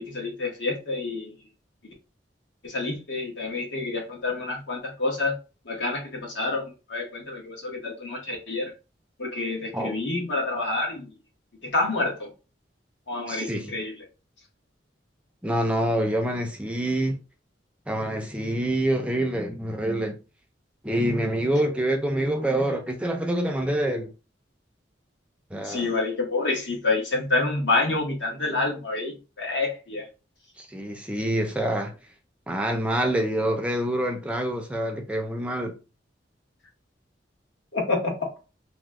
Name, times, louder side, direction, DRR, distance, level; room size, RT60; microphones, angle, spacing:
voice 1, 0.0-1.4 2.6-5.4 5.6-8.7 9.2-11.1 11.6-12.3 13.1-13.9 25.6-30.0 37.7-38.1, left 3 dB, 75° left, 1.1 m, -28 dB
voice 2, 13.3-13.8 15.4-17.2 17.9-20.2 20.8-24.1 25.5-25.9 30.6-31.9 32.5-35.8, right 1 dB, 5° right, 0.4 m, -26 dB
2.9 x 2.0 x 3.5 m
head